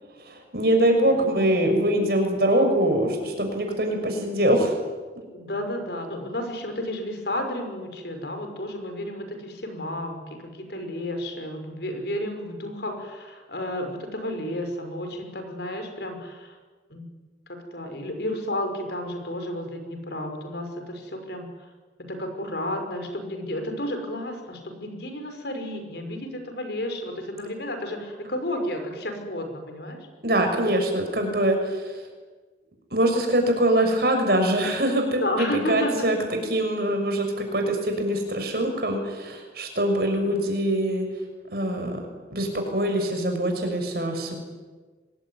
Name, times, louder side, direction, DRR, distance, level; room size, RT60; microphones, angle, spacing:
voice 1, 0.2-4.7 30.2-32.0 32.9-36.2 36.5-41.1 41.5-42.0 42.3-44.4, right 1 dB, 55° right, 4 dB, 6.3 m, -23 dB
voice 2, 5.3-16.6 16.9-17.1 17.5-21.7 22.0-30.1 35.2-36.1 36.8-36.9 40.1-40.5, left 1 dB, 65° left, 6 dB, 5.6 m, -32 dB
25.5 x 20.5 x 9.7 m, 1.4 s
head